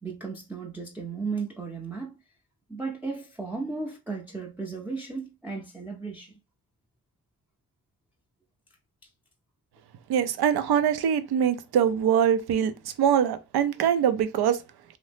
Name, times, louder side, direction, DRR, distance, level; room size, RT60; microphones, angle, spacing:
voice 1, 0.0-2.2 2.7-6.3, right 4 dB, 5° right, 0.5 m, -35 dB
voice 2, 10.1-14.6, right 9 dB, 75° right, 0.5 m, -23 dB
2.7 x 2.0 x 3.3 m
cardioid pair, 65°, 39 cm